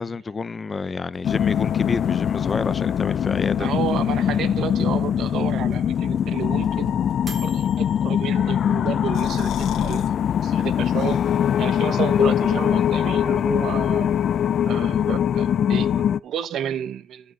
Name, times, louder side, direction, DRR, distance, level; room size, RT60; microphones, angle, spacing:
voice 1, 0.0-3.7, left 4 dB, 35° left, 0.7 m, -29 dB
sound 1, 1.1-10.2, right 4 dB, 40° right, 3.6 m, -49 dB
sound 2, 1.2-16.2, left 9 dB, 60° left, 0.4 m, -22 dB
voice 2, 3.5-7.0 7.4-10.0 10.4-11.2 11.6-14.1 14.6-17.3, right 9 dB, 70° right, 1.0 m, -31 dB
sound 3, 8.9-10.1 10.5-10.6 10.9-11.6, left 9 dB, 80° left, 1.9 m, -36 dB
12.0 x 5.5 x 5.4 m
cardioid pair, 90°, 0 cm